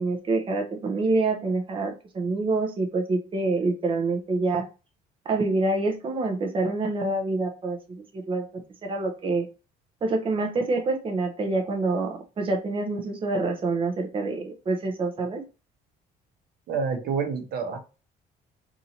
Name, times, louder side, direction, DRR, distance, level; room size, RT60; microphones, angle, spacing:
voice 1, 0.0-4.6 5.2-9.5 10.0-15.4, right 3 dB, 30° right, 3 dB, 0.7 m, -26 dB
voice 2, 16.7-17.8, right 5 dB, 70° right, 5 dB, 1.0 m, -28 dB
4.1 x 2.7 x 2.8 m, 0.31 s
cardioid pair, 110°, 17 cm